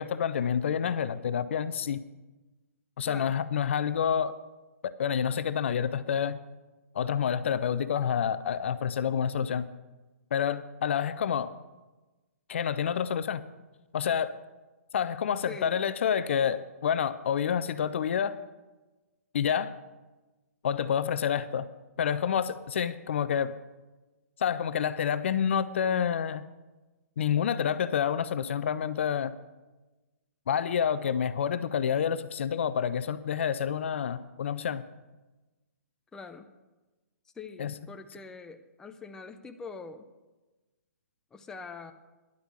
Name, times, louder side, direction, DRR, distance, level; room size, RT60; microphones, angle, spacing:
voice 1, 0.0-2.0 3.0-4.3 4.8-6.4 6.9-9.7 10.3-11.5 12.5-13.4 13.9-14.3 14.9-18.4 19.3-19.7 20.6-21.7 22.0-23.5 24.4-26.4 27.2-29.3 30.5-34.8 37.6-37.7, left 8 dB, 50° left, 14 dB, 0.6 m, -28 dB
voice 2, 3.0-3.3 15.4-15.8 36.1-36.5 37.4-40.1 41.3-41.9, left 5 dB, 5° left, 7 dB, 0.6 m, -43 dB
11.0 x 7.9 x 8.1 m, 1.1 s
figure-of-eight pair, 125°, 9 cm